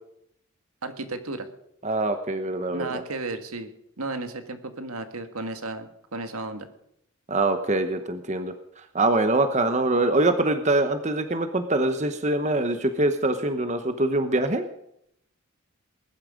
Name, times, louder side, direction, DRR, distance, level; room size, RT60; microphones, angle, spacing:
voice 1, 0.8-1.5 2.7-3.7 4.0-6.7, right 2 dB, 85° right, 7 dB, 1.8 m, -34 dB
voice 2, 1.8-3.0 7.3-14.7, right 2 dB, 30° right, 8 dB, 0.9 m, -24 dB
20.0 x 11.5 x 5.1 m, 0.75 s
head